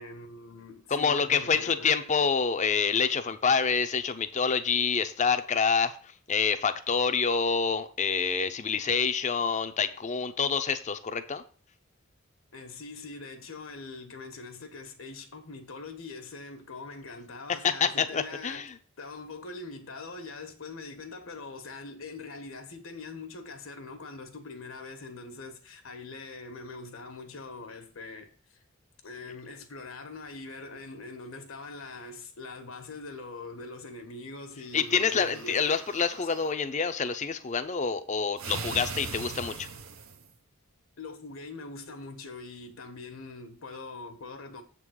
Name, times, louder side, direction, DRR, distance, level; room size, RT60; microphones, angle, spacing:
voice 1, 0.0-1.9 12.5-18.6 19.0-28.6 29.0-35.6 41.0-44.6, left 3 dB, 80° left, 1.3 m, -43 dB
voice 2, 0.9-5.9 6.3-11.4 17.6-18.7 34.7-39.7, left 5 dB, 35° left, 0.6 m, -27 dB
sound 1, 34.8-36.5 38.4-40.3, right 5 dB, 90° right, 0.8 m, -40 dB
7.5 x 3.8 x 6.3 m
head